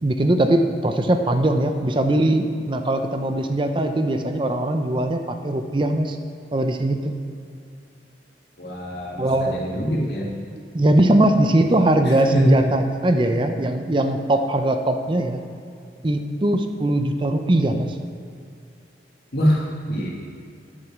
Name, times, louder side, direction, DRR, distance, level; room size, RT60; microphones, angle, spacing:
voice 1, 0.0-6.2 6.5-7.1 9.2-9.6 10.7-15.4 16.0-17.9, right 1 dB, 25° right, 7 dB, 0.6 m, -20 dB
voice 2, 8.6-10.3 12.3-12.5 19.3-20.1, equal, 60° left, -3 dB, 2.0 m, -24 dB
8.8 x 6.8 x 6.1 m, 2.4 s
head